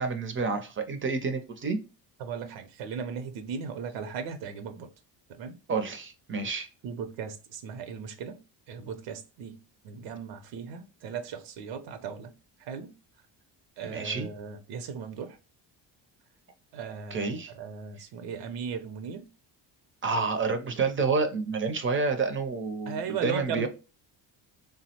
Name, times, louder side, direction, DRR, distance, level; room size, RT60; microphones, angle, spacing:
voice 1, 0.0-1.8 5.7-6.7 13.8-14.3 17.1-17.5 20.0-23.7, right 4 dB, 30° right, 0.4 m, -29 dB
voice 2, 2.2-4.9 5.3-5.6 6.8-8.4 8.7-12.3 12.6-12.9 13.8-15.4 16.7-19.3 22.9-23.7, right 6 dB, 90° right, 0.6 m, -37 dB
3.5 x 2.0 x 2.8 m
cardioid pair, 100°, 43 cm